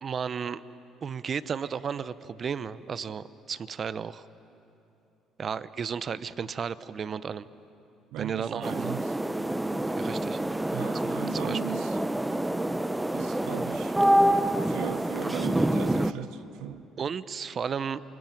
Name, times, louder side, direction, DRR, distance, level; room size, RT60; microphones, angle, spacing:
voice 1, 0.0-0.6 1.0-4.2 5.4-7.5 8.2-8.9 9.9-10.4 11.4-11.7 17.0-18.0, right 6 dB, 45° right, 0.8 m, -33 dB
voice 2, 8.1-9.1 10.7-12.0 13.1-14.0 14.6-16.9, right 14 dB, 75° right, 0.6 m, -38 dB
sound 1, 8.6-16.1, right 1 dB, 10° right, 0.9 m, -27 dB
27.5 x 23.0 x 9.3 m
supercardioid pair, 75°, 0 cm